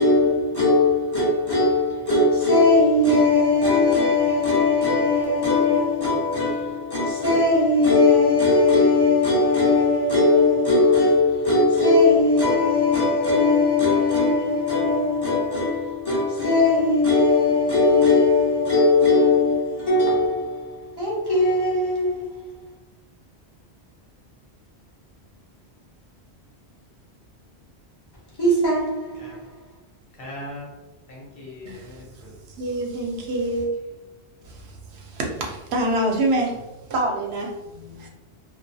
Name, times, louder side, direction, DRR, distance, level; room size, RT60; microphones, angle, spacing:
voice 1, 0.0-22.3 28.4-29.4, left 3 dB, 30° left, 0.5 m, -19 dB
voice 2, 30.2-30.7 31.1-32.3 37.7-38.1, left 1 dB, 65° left, 0.9 m, -40 dB
voice 3, 31.7-33.7 34.4-37.6 38.0-38.1, right 1 dB, 75° right, 0.8 m, -27 dB
2.3 x 2.2 x 2.6 m
omnidirectional pair, 1.1 m